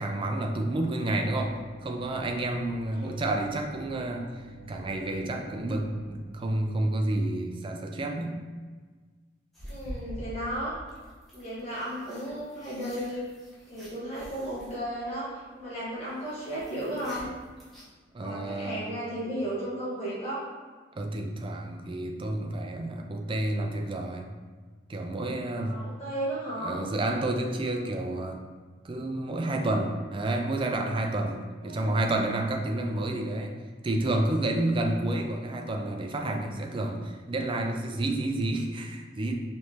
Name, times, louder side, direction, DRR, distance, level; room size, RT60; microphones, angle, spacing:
voice 1, 0.0-8.4 18.1-18.9 21.0-24.2 24.9-25.8 26.6-28.4 28.8-31.4 31.6-33.6 33.8-39.4, right 1 dB, 25° right, 3 dB, 0.4 m, -30 dB
sound 1, 1.0-6.2, right 2 dB, 80° right, 0.6 m, -49 dB
sound 2, 9.5-17.8, equal, ahead, 1.0 m, -45 dB
voice 2, 9.7-10.7 11.3-13.2 13.7-15.3 15.5-17.3 18.1-20.4 25.6-26.8 31.6-32.0, right 1 dB, 30° left, -10 dB, 1.3 m, -34 dB
4.7 x 3.2 x 2.8 m, 1.4 s
head